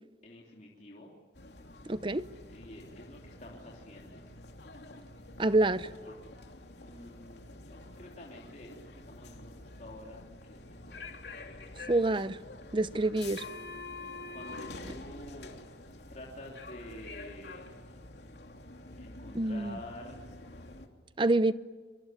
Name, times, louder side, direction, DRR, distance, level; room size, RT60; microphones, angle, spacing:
voice 1, 0.2-1.1 2.5-4.2 6.0-6.1 6.8-11.2 14.3-15.6 16.1-17.7 19.0-20.3, left 1 dB, 45° left, 3.3 m, -49 dB
sound 1, 1.3-20.9, left 2 dB, 75° left, 3.0 m, -47 dB
voice 2, 1.9-2.3 5.4-5.9 11.9-12.4 12.7-13.4 19.3-19.8 21.2-21.5, right 2 dB, 30° right, 0.8 m, -27 dB
25.0 x 25.0 x 9.3 m
head